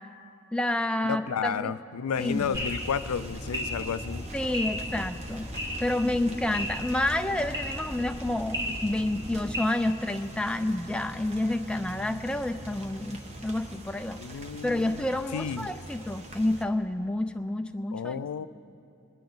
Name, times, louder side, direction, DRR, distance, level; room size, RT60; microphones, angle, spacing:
voice 1, 0.5-1.7 2.2-2.6 4.3-5.5 5.8-14.2 14.6-18.2, left 1 dB, 5° left, 7 dB, 0.3 m, -29 dB
voice 2, 1.1-4.2 14.2-15.1 15.3-15.7 17.9-18.5, left 7 dB, 85° left, 14 dB, 0.4 m, -32 dB
sound 1, 2.1-16.6, right 1 dB, 30° right, 0.9 m, -44 dB
sound 2, 2.5-9.6, equal, 15° right, 1.4 m, -36 dB
26.0 x 10.5 x 3.9 m, 2.8 s
head